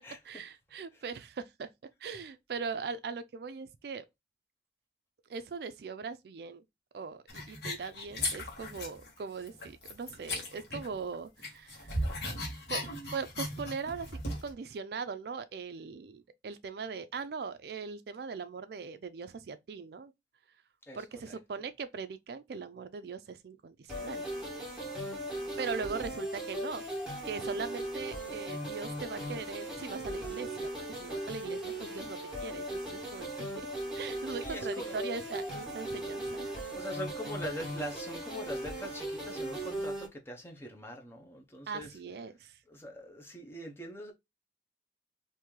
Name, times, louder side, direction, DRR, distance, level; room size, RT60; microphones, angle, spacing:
voice 1, 0.2-1.7 2.0-4.1 5.3-6.6 6.9-11.9 12.7-20.1 20.9-24.2 25.6-26.8 27.2-33.3 33.6-33.7 34.0-36.5 41.7-42.6, right 5 dB, 60° right, 0.4 m, -40 dB
sound 1, 7.3-9.1 9.4-11.1 11.4-14.5, left 1 dB, 60° left, 1.2 m, -37 dB
voice 2, 20.9-21.4 25.9-26.1 34.4-35.0 36.8-41.9 42.7-44.1, equal, 15° left, 0.6 m, -42 dB
sound 2, 23.9-40.1, right 1 dB, ahead, 1.4 m, -38 dB
3.0 x 2.6 x 3.6 m
head